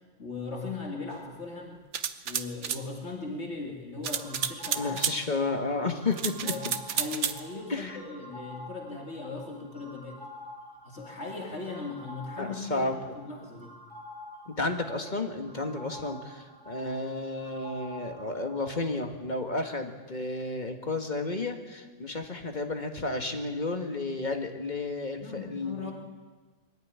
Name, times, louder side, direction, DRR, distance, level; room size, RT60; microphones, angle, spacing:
voice 1, 0.2-1.8 2.2-5.0 5.8-6.1 6.4-10.2 10.8-13.7 25.2-25.9, left 3 dB, 60° left, 0 dB, 2.8 m, -38 dB
sound 1, 1.9-2.8 4.0-5.2 6.1-7.4, right 7 dB, 65° right, 1.2 m, -31 dB
sound 2, 4.1-18.9, left 1 dB, 15° right, 5.1 m, -48 dB
voice 2, 4.8-6.5 7.7-8.0 12.4-13.2 14.5-25.9, left 3 dB, 35° left, 5 dB, 1.9 m, -32 dB
22.5 x 14.0 x 9.6 m, 1.4 s
omnidirectional pair, 1.3 m